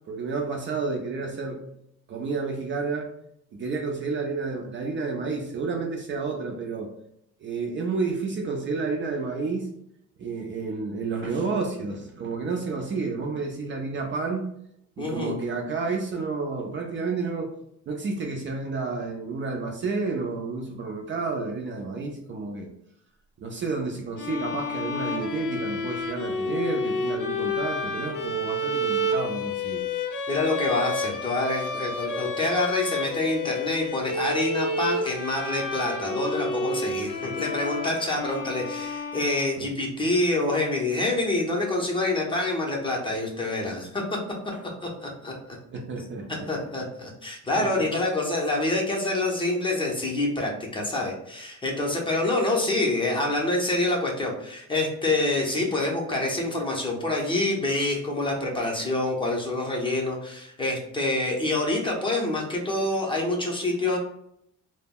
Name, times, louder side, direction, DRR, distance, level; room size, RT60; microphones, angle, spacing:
voice 1, 0.0-1.6 2.1-3.1 3.5-6.9 7.4-9.7 10.2-14.5 15.0-17.5 17.9-22.7 23.4-29.8 39.6-39.7 45.7-46.7 47.6-47.9 55.7-55.8, right 4 dB, 40° right, 1 dB, 0.4 m, -30 dB
voice 2, 15.0-15.3 30.3-44.2 44.8-45.3 46.5-64.0, left 2 dB, 15° left, -2 dB, 0.6 m, -26 dB
sound 1, 24.2-39.8, left 2 dB, 80° left, 0.5 m, -30 dB
2.2 x 2.0 x 3.5 m, 0.74 s
cardioid pair, 125°, 32 cm